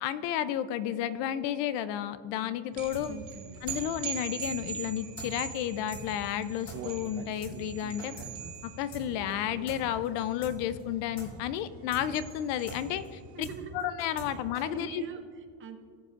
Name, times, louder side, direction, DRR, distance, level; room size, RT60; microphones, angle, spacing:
voice 1, 0.0-3.2 3.6-8.2 8.6-13.5 13.7-15.0, left 10 dB, 65° left, 14 dB, 0.6 m, -32 dB
sound 1, 2.7-13.4, right 8 dB, 45° right, 2.2 m, -43 dB
sound 2, 2.9-3.0 3.3-3.4 3.7-3.8 4.0-4.1 4.4-4.5 4.8-4.9 5.2-5.3 5.5-5.6 5.9-6.0 6.3-6.4 6.7-6.8 7.0-7.1 7.4-7.5 7.8-8.3 8.5-8.6 8.9-9.0 9.3-9.4 9.7-9.8 10.0-10.1 10.4-10.5 10.8-10.9 11.2-11.3 11.5-11.6 11.9-12.0 12.3-12.4 12.7-12.8 13.0-13.1 13.4-13.5 13.8-14.3 14.5-14.6, left 1 dB, 35° left, 2.4 m, -43 dB
voice 2, 3.1-3.6 13.3-13.9 14.3-15.8, right 8 dB, 25° right, 6 dB, 0.5 m, -44 dB
Human voice, 6.2-10.3 10.7-10.8 11.2-11.3, right 6 dB, 65° right, 1.1 m, -46 dB
19.0 x 7.6 x 2.5 m, 2.1 s
cardioid pair, 175°, 47 cm